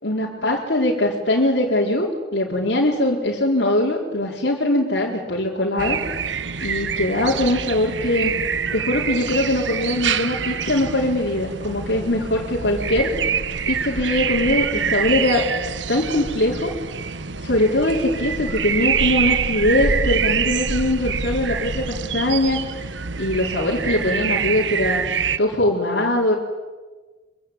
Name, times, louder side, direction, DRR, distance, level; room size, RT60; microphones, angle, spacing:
voice 1, 0.0-6.0 6.6-8.3 8.7-13.1 13.7-15.5 15.9-16.7 17.4-22.6 23.2-25.0 25.4-26.4, left 1 dB, 70° left, -3 dB, 4.5 m, -21 dB
sound 1, 5.8-25.4, right 6 dB, 90° right, 1.2 m, -25 dB
26.0 x 25.0 x 9.1 m, 1.3 s
head